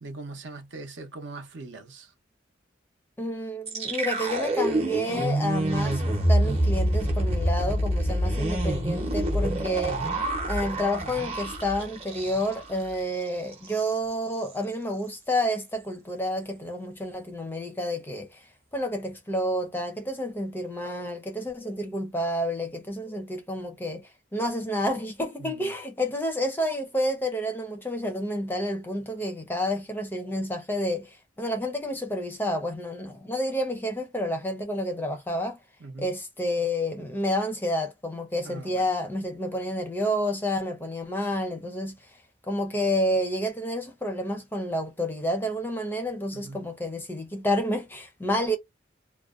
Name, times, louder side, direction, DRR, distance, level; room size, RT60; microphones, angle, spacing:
voice 1, 0.0-2.1 25.4-25.7 35.8-36.1 38.4-38.8 46.3-46.6, right 3 dB, 65° right, 0.7 m, -41 dB
voice 2, 3.2-10.1 10.5-18.4 18.7-35.6 36.0-42.0 42.5-48.6, equal, 10° left, 0.5 m, -29 dB
sound 1, 3.7-12.7 13.0-13.2 13.5-13.9, right 1 dB, 30° right, 0.7 m, -26 dB
2.4 x 2.1 x 2.4 m
head